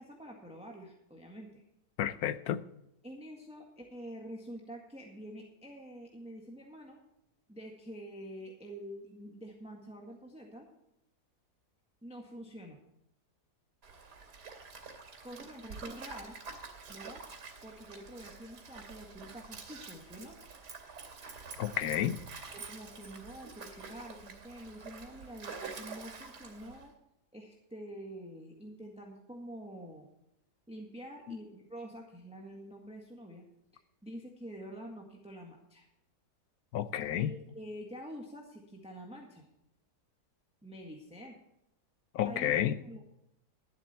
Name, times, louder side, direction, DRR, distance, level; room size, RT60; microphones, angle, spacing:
voice 1, 0.0-1.6 3.0-7.0 7.5-10.7 12.0-12.8 15.2-16.4 16.9-17.2 17.6-20.4 22.5-26.9 27.3-30.1 30.7-33.4 33.7-35.9 37.2-39.5 40.6-41.4 42.2-42.5 42.8-43.0, equal, 5° right, 1.7 m, -47 dB
voice 2, 2.0-2.6 21.6-22.2 31.3-31.4 36.7-37.3 42.1-42.8, left 11 dB, 70° left, 1.1 m, -31 dB
Stream, 13.8-26.9, right 4 dB, 80° right, 3.2 m, -47 dB
12.0 x 11.5 x 4.4 m
omnidirectional pair, 1.7 m